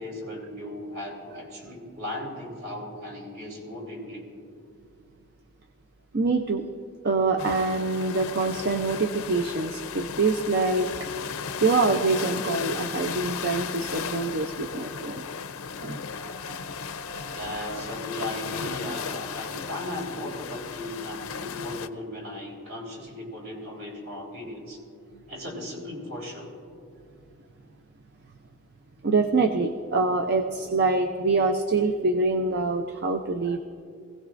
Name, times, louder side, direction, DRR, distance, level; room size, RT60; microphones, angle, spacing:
voice 1, 0.0-4.2 17.3-24.8 25.3-26.5, left 1 dB, 70° right, -2 dB, 3.9 m, -36 dB
voice 2, 6.1-6.6 7.0-11.1 11.6-15.2 15.8-17.4 29.0-33.6, right 3 dB, 50° right, 5 dB, 0.6 m, -25 dB
sound 1, 7.4-21.9, left 6 dB, 80° left, 0.6 m, -35 dB
24.0 x 16.5 x 2.5 m, 2.4 s
head